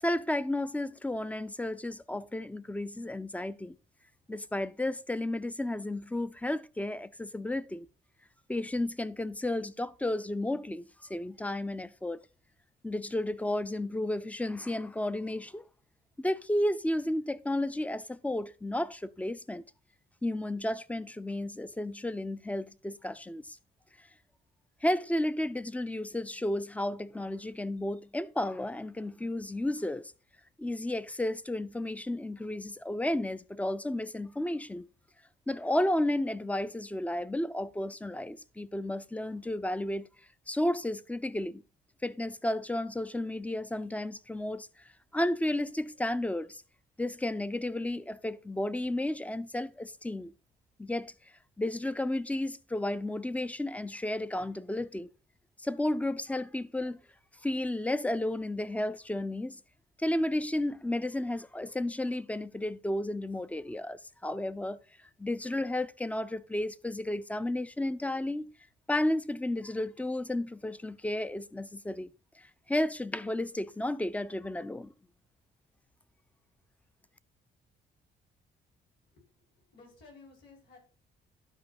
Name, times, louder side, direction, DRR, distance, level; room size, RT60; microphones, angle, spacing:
voice 1, 0.0-3.8 4.3-7.9 8.5-12.2 12.8-15.7 16.2-19.6 20.2-23.6 24.8-30.1 30.6-34.9 35.5-40.1 40.5-41.6 42.0-44.7 45.1-46.6 47.0-50.3 50.8-51.1 51.6-55.1 55.6-57.0 57.4-59.6 60.0-64.8 65.2-68.5 68.9-72.1 72.4-74.9, left 1 dB, 5° left, 0.4 m, -32 dB
voice 2, 79.1-80.8, left 4 dB, 60° left, 5.4 m, -56 dB
11.5 x 4.8 x 4.2 m
cardioid pair, 90°, 20 cm